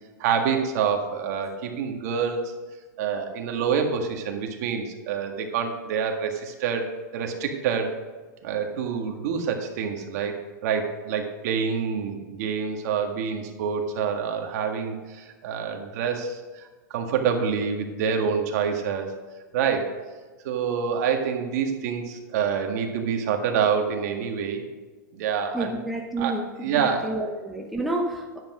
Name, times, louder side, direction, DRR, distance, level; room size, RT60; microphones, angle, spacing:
voice 1, 0.2-2.5 3.0-6.9 7.1-7.9 8.4-16.6 16.9-19.2 19.5-19.9 20.4-24.6 25.1-25.8 26.2-26.3 26.6-27.1, right 6 dB, 55° right, 3 dB, 1.8 m, -27 dB
voice 2, 25.5-28.4, right 2 dB, ahead, 0 dB, 0.9 m, -30 dB
10.5 x 8.1 x 5.0 m, 1.3 s
hypercardioid pair, 140°, 10 cm